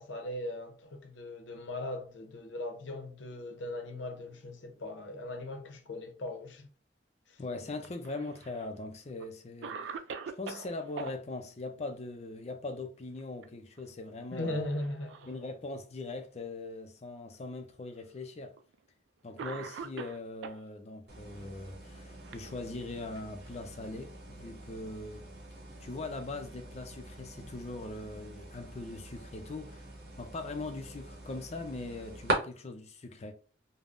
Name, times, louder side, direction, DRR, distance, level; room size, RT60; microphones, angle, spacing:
voice 1, 0.0-6.7 7.3-7.4 14.3-15.4, left 1 dB, 85° left, 0.7 m, -39 dB
voice 2, 7.4-10.0 10.4-14.7 15.3-18.5 19.2-25.3 25.8-29.9 30.2-33.3, left 2 dB, 35° left, 0.4 m, -41 dB
Cough, 7.8-8.7 9.2-9.3 9.6-11.1 13.0-13.4 13.8-13.9 14.7-15.4 16.2-16.3 17.3-17.4 18.6-18.7 19.4-20.6 21.6-23.0, right 5 dB, 80° right, 0.3 m, -43 dB
sound 1, 21.1-32.3, right 2 dB, 60° right, 0.9 m, -42 dB
3.4 x 2.1 x 2.5 m
head